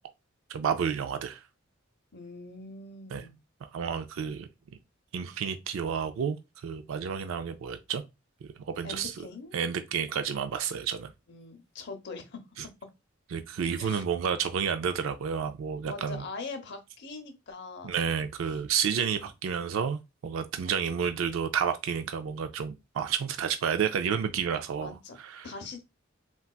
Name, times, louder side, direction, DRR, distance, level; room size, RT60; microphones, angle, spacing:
voice 1, 0.5-1.4 3.1-3.2 3.7-4.5 5.1-6.4 6.6-8.0 8.7-9.1 9.5-11.1 13.3-16.2 17.8-25.5, right 7 dB, 80° right, 0.3 m, -30 dB
voice 2, 2.1-3.4 8.8-9.6 11.3-12.7 13.7-14.0 15.8-17.9 20.6-21.0 24.8-25.2 25.4-25.8, left 3 dB, 60° left, 0.7 m, -42 dB
3.8 x 2.3 x 2.3 m
head